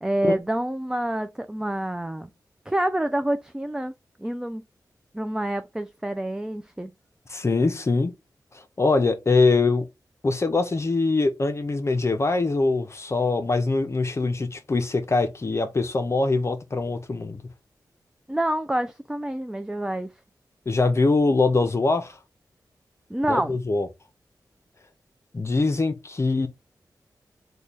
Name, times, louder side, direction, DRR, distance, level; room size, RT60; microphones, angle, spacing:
voice 1, 0.0-2.3 2.7-3.9 4.2-4.6 5.1-6.9 18.3-20.1 23.1-23.6, right 1 dB, 10° right, 0.3 m, -27 dB
voice 2, 7.3-8.1 8.8-9.8 10.2-17.4 20.7-22.2 23.3-23.9 25.3-26.5, left 3 dB, 40° left, 0.6 m, -23 dB
3.1 x 2.2 x 3.8 m
cardioid pair, 60°, 7 cm